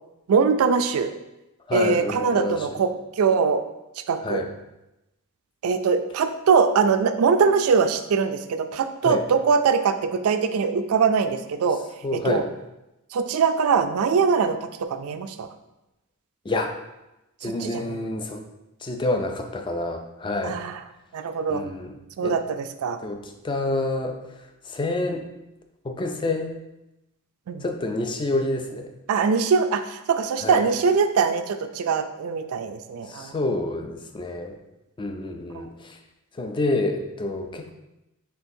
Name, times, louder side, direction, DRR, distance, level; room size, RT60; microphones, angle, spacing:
voice 1, 0.3-1.1 1.7-2.9 3.2-3.6 4.1-4.4 5.6-11.8 12.1-12.4 13.1-14.6 14.9-15.5 17.4-18.0 20.4-20.8 21.1-21.6 22.2-23.0 27.5-27.6 29.1-33.3 35.5-35.7, right 5 dB, 70° right, 9 dB, 0.3 m, -22 dB
voice 2, 1.7-2.8 4.2-4.5 9.0-9.2 12.0-12.5 16.4-16.8 17.4-18.4 18.8-20.6 21.5-22.4 23.0-24.2 24.7-25.3 25.8-26.5 27.6-28.9 30.4-30.7 33.1-34.6 35.0-36.0 36.3-37.7, left 2 dB, 20° left, 5 dB, 0.3 m, -28 dB
4.3 x 3.9 x 2.6 m, 0.95 s
head